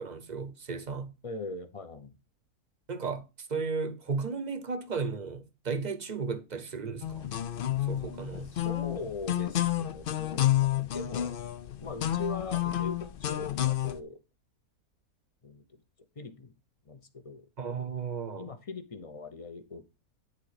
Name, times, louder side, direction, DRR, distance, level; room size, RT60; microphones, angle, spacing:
voice 1, 0.0-1.1 2.9-7.3 7.9-8.5 17.6-18.4, right 5 dB, 35° right, 0.8 m, -34 dB
voice 2, 1.2-2.2 8.4-11.3 11.8-14.2 15.4-15.8 16.2-16.5 16.8-17.5 18.3-19.9, left 3 dB, 30° left, 0.6 m, -41 dB
sound 1, 7.0-14.0, left 13 dB, 75° left, 0.5 m, -30 dB
10.5 x 3.7 x 4.9 m
omnidirectional pair, 1.6 m